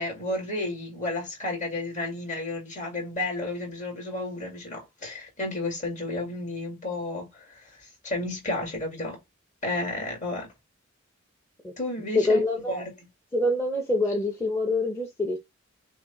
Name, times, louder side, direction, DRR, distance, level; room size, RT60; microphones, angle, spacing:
voice 1, 0.0-7.6 8.0-9.2 9.6-10.5 11.8-12.4 12.7-12.9, left 2 dB, 40° left, 2.2 m, -32 dB
voice 2, 12.1-12.9 13.3-15.4, left 2 dB, 15° left, 0.8 m, -25 dB
6.0 x 2.2 x 3.9 m
head